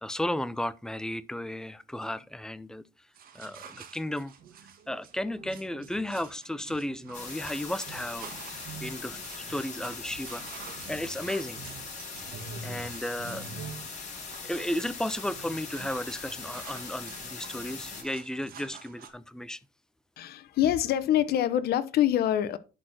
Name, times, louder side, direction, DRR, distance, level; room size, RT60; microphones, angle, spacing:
voice 1, 0.0-2.8 3.3-4.3 4.9-8.3 8.8-10.4 10.9-11.6 12.6-13.5 14.4-19.6, left 1 dB, 5° left, 0.6 m, -34 dB
sound 1, 3.2-19.1, right 5 dB, 60° right, 1.8 m, -46 dB
sound 2, 7.1-18.0, left 4 dB, 45° left, 5.9 m, -41 dB
voice 2, 20.2-22.6, left 11 dB, 70° left, 1.0 m, -25 dB
11.0 x 4.4 x 5.9 m
cardioid pair, 110°, 17 cm